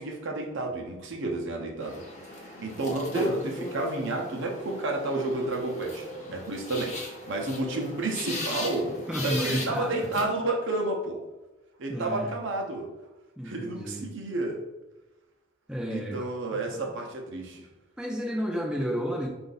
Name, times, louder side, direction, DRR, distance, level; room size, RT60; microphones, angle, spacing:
voice 1, 0.0-2.0 2.3-8.9 9.2-11.2 11.8-12.9 13.4-14.6 15.9-17.7, right 2 dB, 60° right, 1 dB, 0.7 m, -31 dB
sound 1, 1.8-10.2, left 1 dB, 35° left, 0.8 m, -37 dB
voice 2, 9.1-10.1 11.9-12.3 13.4-14.0 15.7-16.3 16.7-17.0 18.0-19.3, equal, 5° right, -2 dB, 0.5 m, -31 dB
4.4 x 2.6 x 3.9 m, 1.1 s
head